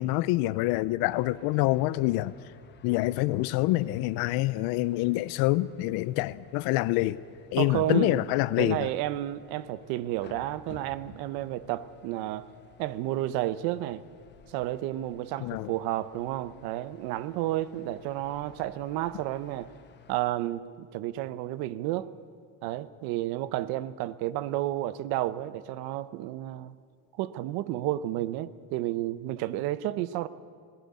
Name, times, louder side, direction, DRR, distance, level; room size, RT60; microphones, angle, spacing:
voice 1, 0.0-2.3 2.8-7.2 7.5-8.9 15.4-15.7, left 18 dB, 75° left, 0.6 m, -26 dB
sound 1, 1.0-20.3, left 8 dB, 30° left, 1.2 m, -55 dB
voice 2, 7.6-8.2 8.6-12.5 12.8-14.0 14.5-19.7 20.1-22.1 22.6-26.7 27.1-30.3, right 14 dB, 75° right, 0.9 m, -31 dB
18.0 x 15.5 x 9.6 m
cardioid pair, 160°, 37 cm